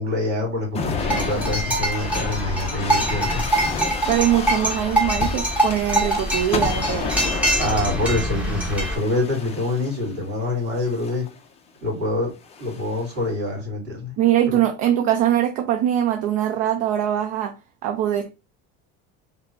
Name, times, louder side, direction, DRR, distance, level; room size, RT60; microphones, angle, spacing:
voice 1, 0.0-3.4 7.6-11.3 11.8-12.3 12.6-14.2, left 2 dB, 35° right, 2.4 m, -25 dB
sound 1, 0.7-10.1 10.8-11.3 12.4-13.1, left 5 dB, 20° left, 0.4 m, -31 dB
sound 2, 1.0-9.0, right 1 dB, 5° right, 0.8 m, -24 dB
voice 2, 4.1-7.2 14.2-17.6 17.8-18.3, right 11 dB, 50° right, 0.5 m, -22 dB
5.0 x 2.0 x 3.2 m
cardioid pair, 150°, 32 cm